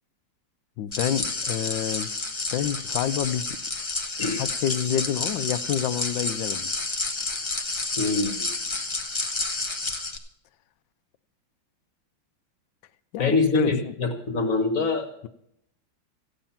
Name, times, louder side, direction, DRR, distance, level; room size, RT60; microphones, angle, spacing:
voice 1, 0.8-2.1 2.5-3.6 4.4-6.7 13.1-13.9, left 10 dB, 75° left, 11 dB, 1.3 m, -28 dB
sound 1, 0.9-10.2, left 3 dB, 20° left, 0.8 m, -30 dB
voice 2, 8.0-8.5 13.2-15.1, left 3 dB, 45° left, 4 dB, 1.7 m, -24 dB
14.5 x 9.0 x 5.7 m, 0.77 s
omnidirectional pair, 2.1 m